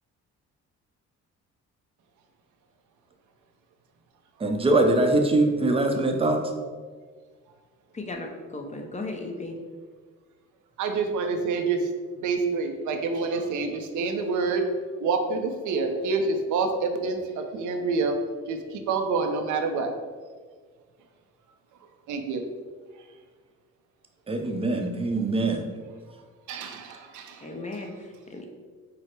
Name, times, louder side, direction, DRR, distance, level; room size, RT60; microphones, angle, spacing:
voice 1, 4.4-6.4 24.3-25.6, right 2 dB, 20° right, 4 dB, 0.6 m, -22 dB
voice 2, 7.9-9.6 27.4-28.4, left 2 dB, 25° left, 2 dB, 0.6 m, -36 dB
voice 3, 10.8-11.9 12.2-14.7 15.0-18.2 18.5-19.9 22.1-22.4 26.5-27.5, right 4 dB, 80° right, 5 dB, 0.6 m, -27 dB
4.8 x 2.1 x 4.4 m, 1.5 s
cardioid pair, 90°, 30 cm